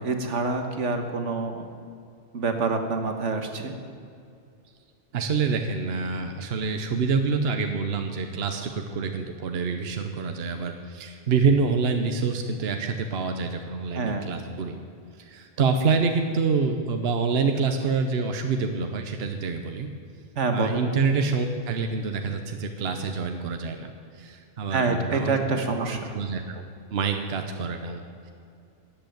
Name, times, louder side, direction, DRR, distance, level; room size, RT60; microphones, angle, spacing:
voice 1, 0.0-1.7 2.3-3.7 13.9-14.3 20.4-20.9 24.7-26.1, right 3 dB, 75° right, 5 dB, 1.6 m, -26 dB
voice 2, 5.1-14.7 15.2-19.9 20.5-25.4 25.8-28.3, right 5 dB, 60° right, 6 dB, 1.1 m, -27 dB
14.0 x 8.0 x 9.2 m, 2.4 s
omnidirectional pair, 1.2 m